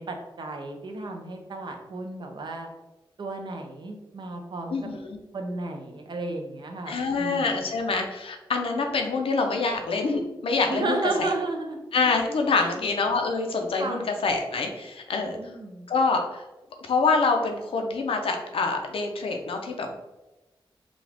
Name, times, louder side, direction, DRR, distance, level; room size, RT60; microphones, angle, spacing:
voice 1, 0.0-2.7 3.2-4.9 5.3-7.5 10.7-11.8 12.5-12.7 13.8-14.1 15.4-15.9, right 2 dB, 55° right, 3 dB, 0.7 m, -33 dB
voice 2, 4.7-5.2 6.9-11.3 11.9-15.4 15.9-16.4 16.8-19.9, left 4 dB, 85° left, 3 dB, 0.7 m, -26 dB
5.1 x 2.4 x 3.5 m, 1.0 s
wide cardioid pair, 105°, 9 cm